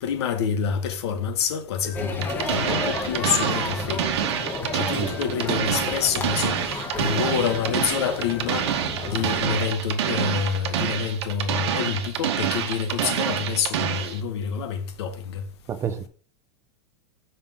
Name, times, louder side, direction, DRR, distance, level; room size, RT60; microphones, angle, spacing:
voice 1, 0.0-4.2 4.7-8.7 9.1-15.4, left 7 dB, 75° left, 1.1 m, -27 dB
sound 1, 1.8-4.8 5.0-8.0 8.2-9.6, left 4 dB, 55° left, 1.9 m, -43 dB
sound 2, 1.9-9.6, left 3 dB, 15° left, 0.8 m, -33 dB
sound 3, 2.2-14.2, right 9 dB, 75° right, 1.0 m, -27 dB
voice 2, 15.7-16.1, right 8 dB, 20° right, 0.5 m, -29 dB
5.6 x 5.6 x 3.5 m
supercardioid pair, 155°, 14 cm